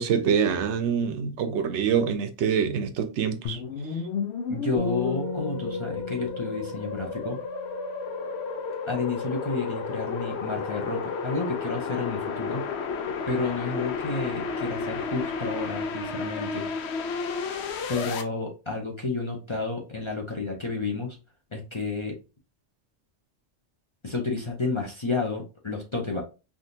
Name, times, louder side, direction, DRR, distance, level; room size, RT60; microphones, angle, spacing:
voice 1, 0.0-3.6, right 7 dB, 80° right, 0.9 m, -25 dB
sound 1, 3.4-18.2, left 5 dB, 70° left, 0.8 m, -32 dB
voice 2, 4.5-7.4 8.9-12.6 13.3-16.7 17.9-21.2 21.5-22.2 24.0-26.2, left 3 dB, 35° left, 0.6 m, -31 dB
sound 2, 4.8-8.0, left 2 dB, 45° right, 0.8 m, -35 dB
3.6 x 2.5 x 2.7 m
omnidirectional pair, 1.2 m